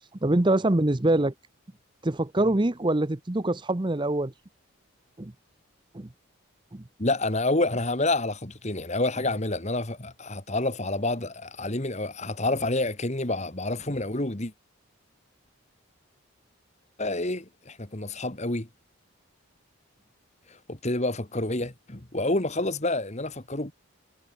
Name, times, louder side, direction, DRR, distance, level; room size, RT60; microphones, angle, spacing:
voice 1, 0.2-1.3 2.0-4.3 5.2-5.3 5.9-6.1 6.7-6.8, right 1 dB, 20° right, 0.7 m, -24 dB
voice 2, 7.0-14.5 17.0-18.7 20.7-23.7, left 2 dB, 30° left, 1.8 m, -28 dB
head